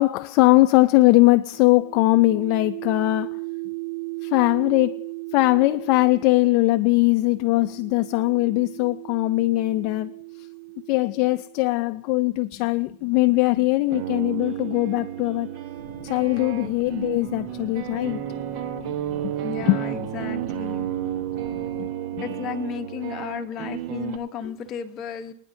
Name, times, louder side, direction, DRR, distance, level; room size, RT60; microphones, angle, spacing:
voice 1, 0.0-3.4 4.2-5.1 5.3-10.5 10.9-15.5 16.0-18.2 19.1-19.3 19.6-19.8 21.8-21.9 22.1-22.2, left 20 dB, 50° left, 0.4 m, -21 dB
sound 1, 1.5-11.9 12.8-16.5, right 27 dB, 85° right, 1.1 m, -38 dB
sound 2, 13.7-24.2, right 12 dB, 55° right, 1.2 m, -32 dB
sound 3, 15.8-21.9, left 1 dB, 15° right, 3.1 m, -43 dB
voice 2, 19.4-20.8 22.2-25.3, left 7 dB, 35° left, 1.0 m, -33 dB
24.5 x 9.8 x 2.7 m
supercardioid pair, 135°, 0 cm